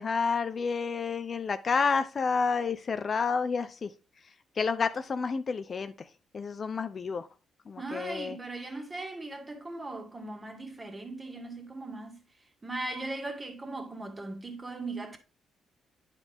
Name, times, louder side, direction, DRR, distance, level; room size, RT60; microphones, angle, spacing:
voice 1, 0.0-3.9 4.6-5.9 6.3-7.3 7.7-8.4, left 5 dB, 40° left, 0.5 m, -29 dB
voice 2, 7.8-12.2 12.6-15.2, right 2 dB, 25° right, 2.0 m, -38 dB
9.6 x 4.9 x 3.5 m
cardioid pair, 90°, 0 cm